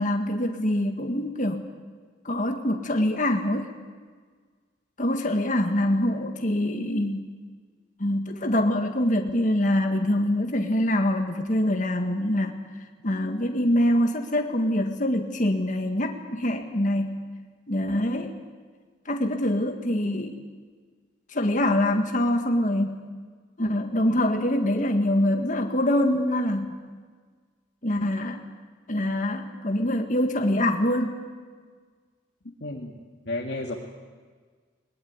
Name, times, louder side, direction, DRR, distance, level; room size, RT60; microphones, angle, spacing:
voice 1, 0.0-1.6 2.3-3.7 5.0-7.3 8.0-12.6 13.0-17.2 17.7-18.3 19.1-20.4 21.3-23.0 23.6-26.8 27.8-28.4 28.9-31.2, left 1 dB, 40° left, 4 dB, 1.8 m, -24 dB
voice 2, 32.6-32.9 33.3-33.8, left 2 dB, 60° left, -1 dB, 2.2 m, -31 dB
21.0 x 21.0 x 9.6 m, 1.6 s
head